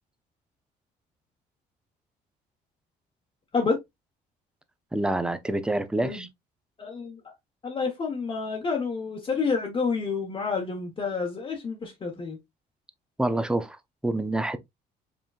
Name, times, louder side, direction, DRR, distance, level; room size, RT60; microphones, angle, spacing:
voice 1, 4.9-6.3 13.2-14.6, right 1 dB, 5° right, 0.5 m, -27 dB
voice 2, 6.8-7.2 7.6-12.4, left 4 dB, 30° left, 1.0 m, -29 dB
4.9 x 3.7 x 2.3 m
cardioid pair, 110°, 17 cm